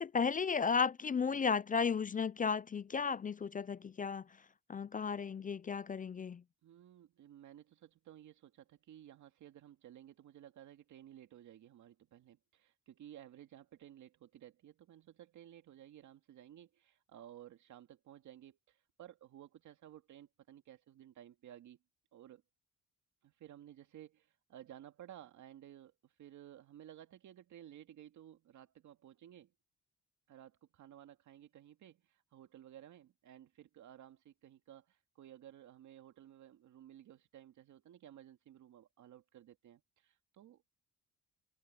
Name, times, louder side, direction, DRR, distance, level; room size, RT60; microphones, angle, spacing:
voice 1, 0.0-4.2 4.7-6.4, left 6 dB, 25° left, 0.5 m, -34 dB
voice 2, 6.6-21.8 22.1-22.4 23.2-29.5 30.3-40.7, right 11 dB, 75° right, 2.3 m, -56 dB
cardioid pair, 90°, 30 cm